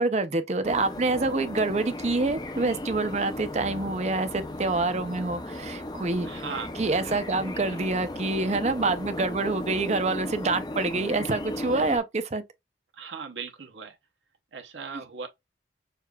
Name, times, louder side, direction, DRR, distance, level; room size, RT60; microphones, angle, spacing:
voice 1, 0.0-6.3 6.8-12.4, right 3 dB, 35° right, 0.5 m, -27 dB
sound 1, 0.6-12.0, left 1 dB, 20° left, 0.5 m, -36 dB
voice 2, 6.2-6.7 12.9-14.0 14.5-15.3, right 5 dB, 80° right, 0.8 m, -37 dB
6.5 x 2.4 x 2.3 m
head